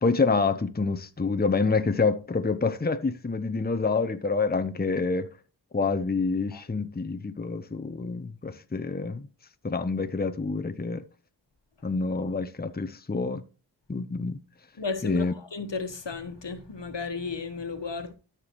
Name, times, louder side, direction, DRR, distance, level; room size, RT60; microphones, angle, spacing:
voice 1, 0.0-5.3 5.7-9.3 9.6-11.0 11.8-13.4 13.9-14.4 15.0-15.3, left 4 dB, 20° left, 0.7 m, -27 dB
voice 2, 14.8-18.1, left 4 dB, 80° left, 1.4 m, -34 dB
13.0 x 6.0 x 3.0 m
wide cardioid pair, 40°, 43 cm